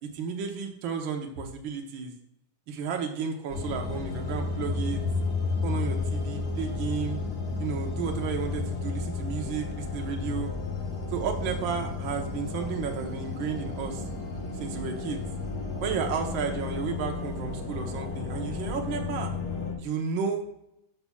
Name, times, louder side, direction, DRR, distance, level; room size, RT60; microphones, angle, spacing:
voice 1, 0.0-2.1 2.7-5.0 5.6-7.2 7.6-10.5 11.1-14.0 14.5-15.2 15.8-19.3 19.8-20.6, right 6 dB, 75° right, 3 dB, 1.1 m, -32 dB
sound 1, 3.5-19.7, left 4 dB, 85° left, 0.8 m, -32 dB
12.5 x 5.7 x 2.3 m, 0.80 s
omnidirectional pair, 3.6 m